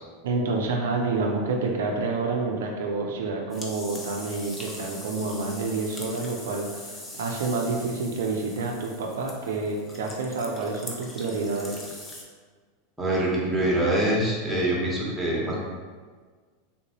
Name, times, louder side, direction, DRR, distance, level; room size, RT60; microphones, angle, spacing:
voice 1, 0.2-12.0, right 3 dB, 80° right, 1 dB, 0.4 m, -28 dB
sound 1, 3.5-12.2, left 2 dB, 20° left, 0.6 m, -42 dB
voice 2, 13.0-15.6, right 1 dB, 5° right, -7 dB, 1.0 m, -24 dB
3.5 x 2.7 x 2.9 m, 1.5 s
hypercardioid pair, 110°, 0 cm